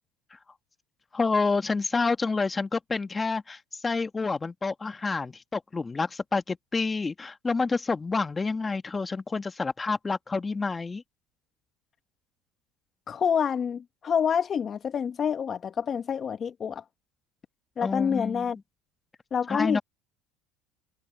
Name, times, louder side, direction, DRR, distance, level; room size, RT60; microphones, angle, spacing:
voice 1, 1.1-11.0 17.8-18.6 19.5-19.8, left 4 dB, 20° left, 1.7 m, -28 dB
voice 2, 13.1-16.8 17.8-18.6 19.3-19.8, left 7 dB, 40° left, 1.3 m, -27 dB
supercardioid pair, 85°, 0 cm